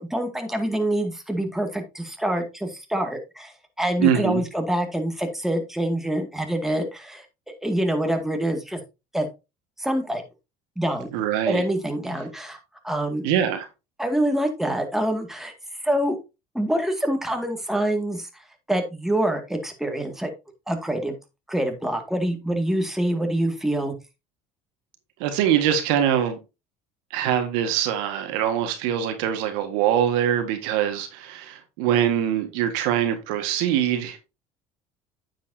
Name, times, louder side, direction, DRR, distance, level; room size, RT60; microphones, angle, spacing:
voice 1, 0.0-7.2 7.6-8.8 9.1-9.3 9.8-10.2 10.8-11.1 11.5-12.6 12.8-13.3 14.0-15.5 15.8-16.2 16.5-18.3 18.7-20.3 20.7-21.2 21.5-23.9, right 1 dB, ahead, 2.1 m, -25 dB
voice 2, 4.0-4.4 11.1-11.6 13.2-13.7 25.2-26.4 27.1-34.2, right 10 dB, 80° right, 1.7 m, -23 dB
9.1 x 7.4 x 2.7 m
supercardioid pair, 85°, 18 cm